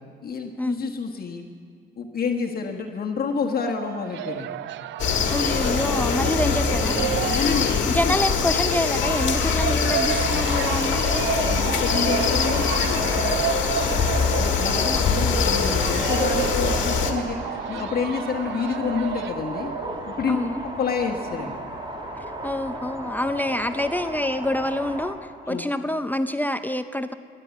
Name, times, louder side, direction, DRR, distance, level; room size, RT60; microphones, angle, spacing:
voice 1, 0.2-1.4 2.0-4.6 7.2-8.1 11.5-12.6 14.3-19.7 20.1-20.4 20.6-21.6 25.4-25.6, left 5 dB, 50° left, 2 dB, 1.4 m, -28 dB
sound 1, 3.3-20.3, right 12 dB, 70° right, 0.4 m, -32 dB
sound 2, 5.0-17.1, left 6 dB, 70° left, 1.6 m, -23 dB
voice 2, 5.3-7.1 7.9-11.3 14.7-15.0 20.3-20.6 22.4-27.1, left 1 dB, 10° left, 9 dB, 0.5 m, -27 dB
sound 3, 10.1-25.2, right 1 dB, 25° right, 1.9 m, -35 dB
13.0 x 9.9 x 8.4 m, 2.1 s
cardioid pair, 90°, 20 cm